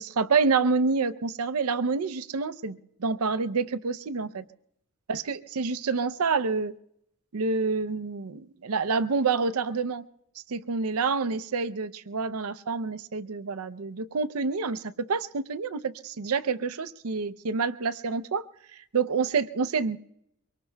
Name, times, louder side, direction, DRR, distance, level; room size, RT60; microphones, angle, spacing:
voice 1, 0.0-4.4 5.1-6.8 7.3-10.0 10.5-18.5 18.7-20.0, right 4 dB, 75° right, 15 dB, 0.6 m, -28 dB
24.5 x 23.5 x 2.3 m, 0.77 s
head